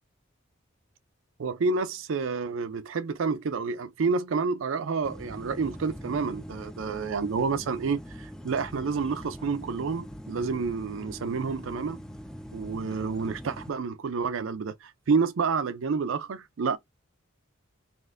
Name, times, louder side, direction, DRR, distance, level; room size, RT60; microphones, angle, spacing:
voice 1, 1.4-12.0 12.5-16.8, right 5 dB, 75° right, 0.5 m, -29 dB
sound 1, 5.0-13.7, equal, 5° left, 0.3 m, -42 dB
4.1 x 2.6 x 2.5 m
head